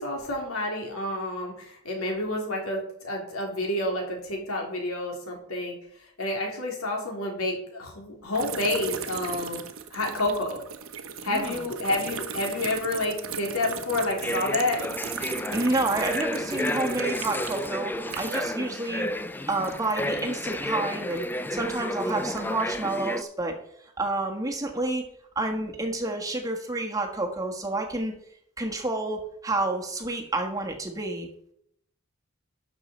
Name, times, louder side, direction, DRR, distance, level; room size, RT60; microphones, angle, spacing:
voice 1, 0.0-5.8 6.2-9.7 9.9-10.6 11.2-14.8, left 2 dB, 75° left, 1 dB, 3.3 m, -29 dB
sound 1, 8.3-18.7 19.0-21.5 22.0-22.8, right 7 dB, 70° right, 1.1 m, -37 dB
sound 2, 14.2-23.2, left 1 dB, 10° left, 0.3 m, -32 dB
voice 2, 15.5-19.1 19.5-23.6 24.0-25.0 25.3-28.1 28.6-31.3, right 2 dB, 15° right, 2 dB, 1.3 m, -29 dB
12.5 x 6.5 x 4.3 m, 0.72 s
head